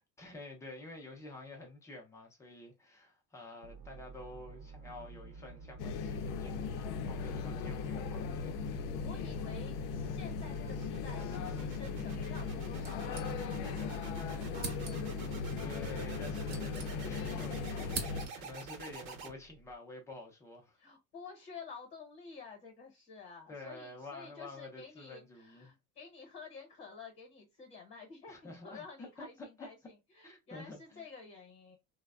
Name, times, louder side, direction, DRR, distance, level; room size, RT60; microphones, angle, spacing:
voice 1, 0.2-8.6 15.6-18.1 18.4-20.8 23.5-25.7 28.3-29.7 30.2-31.1, left 2 dB, 10° left, 0.4 m, -49 dB
sound 1, 3.6-19.7, right 4 dB, 65° right, 0.8 m, -49 dB
sound 2, 5.8-18.3, left 5 dB, 85° left, 0.5 m, -38 dB
voice 2, 8.7-14.8 20.8-31.8, left 5 dB, 35° left, 0.9 m, -51 dB
sound 3, 12.8-13.8 14.1-14.2 14.5-15.2 16.1-17.4 17.6-18.6, right 4 dB, 30° right, 0.7 m, -44 dB
3.3 x 2.0 x 2.2 m
cardioid pair, 180°, 34 cm